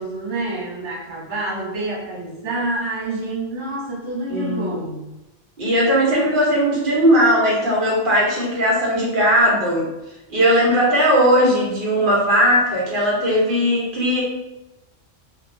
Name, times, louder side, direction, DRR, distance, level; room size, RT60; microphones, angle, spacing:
voice 1, 0.0-5.1, right 2 dB, 75° right, -4 dB, 1.2 m, -27 dB
voice 2, 4.3-4.7 5.6-9.8 10.3-14.2, equal, 50° right, -4 dB, 0.9 m, -18 dB
2.8 x 2.2 x 2.5 m, 0.97 s
omnidirectional pair, 1.2 m